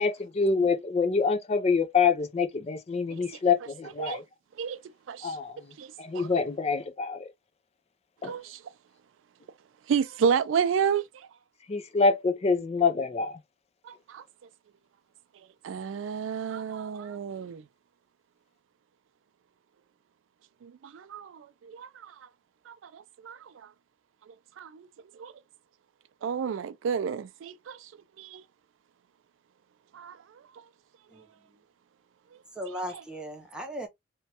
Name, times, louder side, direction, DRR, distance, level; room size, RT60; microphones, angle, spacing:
voice 1, 0.0-4.2 5.2-5.6 6.0-7.3 8.2-8.3 11.7-13.4, left 5 dB, 35° left, 0.4 m, -26 dB
voice 2, 5.8-6.3 8.2-8.6 9.9-11.0 13.9-14.2 15.6-17.6 20.6-22.1 22.7-23.4 24.6-24.9 25.2-25.3 26.2-27.8 28.2-28.4 29.9-30.2, right 7 dB, 85° right, 0.3 m, -31 dB
voice 3, 31.1-31.5 32.5-33.9, equal, 5° right, 0.7 m, -38 dB
3.0 x 2.2 x 2.8 m
head